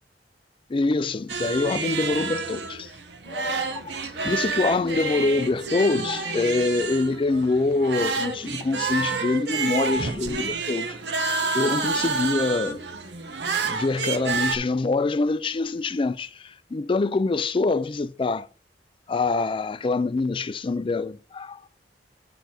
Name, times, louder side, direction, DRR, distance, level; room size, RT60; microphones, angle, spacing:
voice 1, 0.7-2.9 3.3-11.0 11.5-12.8 13.6-18.5 19.1-21.6, left 3 dB, 30° left, 0.4 m, -25 dB
sound 1, 1.3-14.6, right 4 dB, 75° right, 1.1 m, -29 dB
9.1 x 4.3 x 4.3 m
head